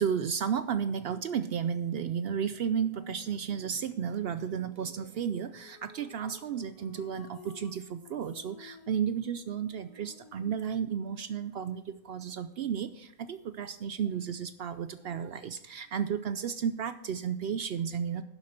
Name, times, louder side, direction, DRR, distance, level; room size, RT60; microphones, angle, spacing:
voice 1, 0.0-18.2, right 7 dB, 75° right, 11 dB, 0.5 m, -33 dB
sound 1, 5.3-10.6, left 5 dB, 85° left, 1.7 m, -54 dB
11.5 x 7.3 x 4.3 m, 0.84 s
omnidirectional pair, 1.6 m